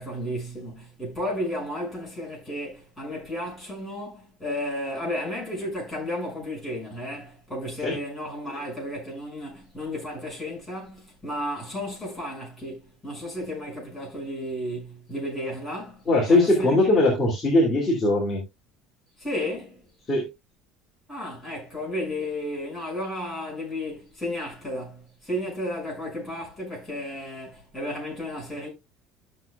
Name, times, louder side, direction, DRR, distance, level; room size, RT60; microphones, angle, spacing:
voice 1, 0.0-16.8 19.2-19.8 21.1-28.7, left 1 dB, ahead, 6.4 m, -33 dB
voice 2, 16.1-18.4 20.1-20.2, left 2 dB, 20° left, 2.6 m, -20 dB
13.5 x 6.8 x 2.3 m
cardioid pair, 165°, 0 cm